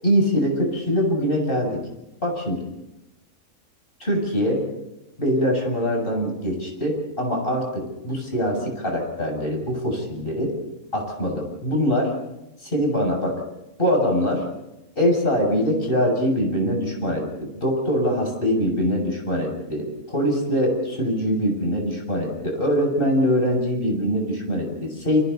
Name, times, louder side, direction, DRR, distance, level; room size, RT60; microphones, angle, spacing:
voice 1, 0.0-1.8 2.2-2.6 4.0-4.6 5.2-10.5 10.9-12.1 12.6-13.3 13.8-14.4 15.0-25.2, equal, 40° left, 1 dB, 7.5 m, -23 dB
30.0 x 29.5 x 4.2 m, 0.94 s
omnidirectional pair, 1.5 m